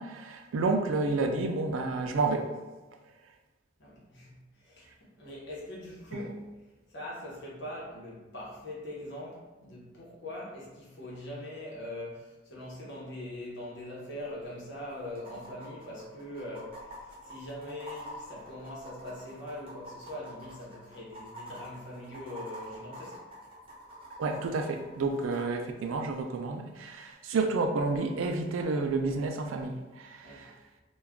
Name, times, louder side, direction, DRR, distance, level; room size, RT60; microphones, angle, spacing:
voice 1, 0.0-2.5 24.2-30.5, right 3 dB, 85° right, 4 dB, 0.4 m, -30 dB
voice 2, 3.8-6.5 6.9-23.2 30.2-30.5, left 1 dB, 60° left, -5 dB, 0.9 m, -42 dB
sound 1, 14.4-14.5 15.1-25.4 27.1-27.2, equal, 30° right, 0.5 m, -46 dB
2.3 x 2.3 x 3.5 m, 1.2 s
head